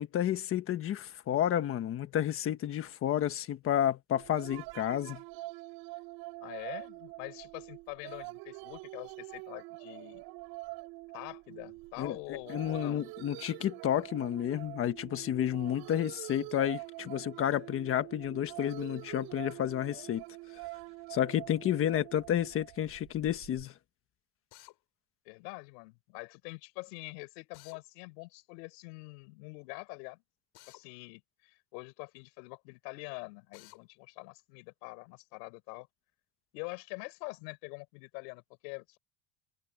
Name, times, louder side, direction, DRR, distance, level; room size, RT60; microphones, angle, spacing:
voice 1, 0.0-5.2 12.0-20.2 21.1-23.7, left 11 dB, 25° left, 1.3 m, -31 dB
sound 1, 4.1-23.7, right 22 dB, 50° right, 5.3 m, -45 dB
voice 2, 6.4-10.2 11.1-13.0 25.2-30.2 30.7-35.9 36.5-39.0, left 29 dB, 85° left, 6.4 m, -45 dB
Drill, 24.5-24.8 27.5-27.8 30.5-30.8 33.5-33.8, left 20 dB, 50° left, 3.2 m, -54 dB
cardioid pair, 180°, 48 cm